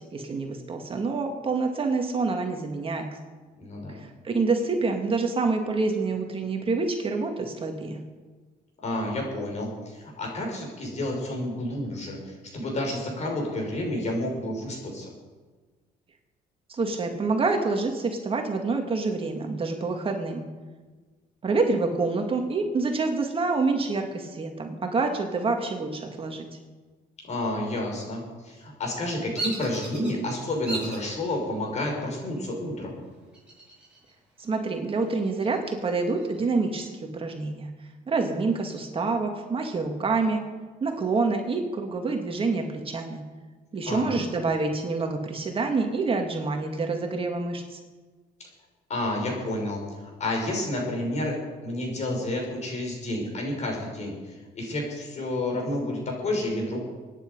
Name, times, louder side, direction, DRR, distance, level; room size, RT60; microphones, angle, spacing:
voice 1, 0.1-3.1 3.9-8.0 16.7-20.5 21.4-26.5 34.4-37.7 38.1-40.4 40.8-43.2 43.7-47.8, right 3 dB, 30° right, 3 dB, 1.9 m, -27 dB
voice 2, 3.6-4.0 8.8-15.1 27.3-33.0 43.9-44.2 48.4-48.5 48.9-56.8, left 1 dB, 40° left, 0 dB, 6.0 m, -30 dB
Bird vocalization bird call bird song, 29.3-30.1 30.6-31.1 31.7-32.2 33.3-34.1 34.4-34.5 35.0-36.4, right 1 dB, 5° right, 7.0 m, -36 dB
24.0 x 10.0 x 5.4 m, 1.3 s
cardioid pair, 110°, 17 cm